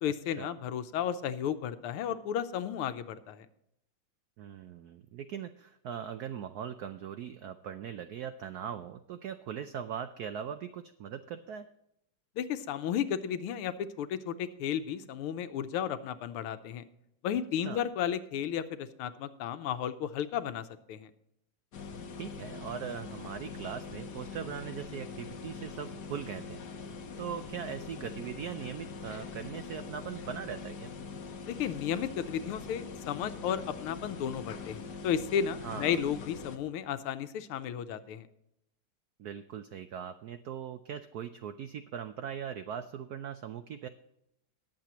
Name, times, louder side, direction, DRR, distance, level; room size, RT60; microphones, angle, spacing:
voice 1, 0.0-3.5 12.4-16.8 17.2-21.1 31.5-38.3, left 9 dB, 90° left, 11 dB, 1.7 m, -33 dB
voice 2, 4.4-11.6 17.5-17.8 22.2-30.9 35.6-36.0 39.2-43.9, right 8 dB, 85° right, 10 dB, 0.8 m, -40 dB
sound 1, 21.7-36.6, left 5 dB, 55° left, 1.5 m, -43 dB
19.5 x 7.6 x 3.0 m, 0.81 s
omnidirectional pair, 2.3 m